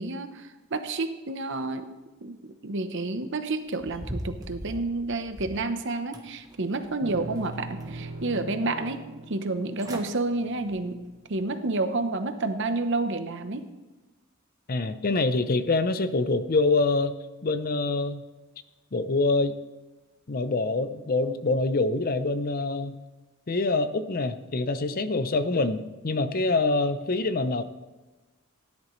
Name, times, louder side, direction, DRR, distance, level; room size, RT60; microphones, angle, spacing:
voice 1, 0.0-1.9 2.2-11.0 11.3-13.7, right 2 dB, 55° right, 9 dB, 0.9 m, -30 dB
sound 1, 3.7-5.7 6.1-7.0 7.4-8.2 8.6-8.7 9.5-9.6 9.8-10.1 10.6-10.8 11.3-11.4, equal, 15° right, 1.1 m, -40 dB
sound 2, 7.0-11.4, right 1 dB, 75° right, 1.4 m, -41 dB
voice 2, 14.7-17.1 17.4-18.2 18.9-19.5 20.3-22.9 23.5-27.6, left 3 dB, 40° left, 11 dB, 0.6 m, -25 dB
17.0 x 10.5 x 3.2 m, 1.1 s
head